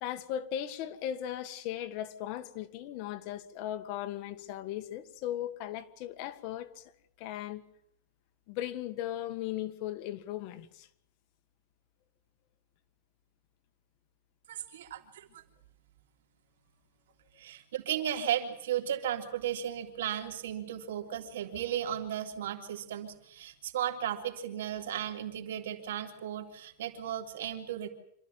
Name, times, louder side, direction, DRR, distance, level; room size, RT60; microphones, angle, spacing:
voice 1, 0.0-6.8 7.2-7.6 8.5-10.9, left 11 dB, 45° left, 1.7 m, -37 dB
voice 2, 14.5-15.4 17.4-27.9, right 10 dB, 85° right, 3.4 m, -35 dB
27.0 x 14.0 x 9.4 m
supercardioid pair, 160°, 0 cm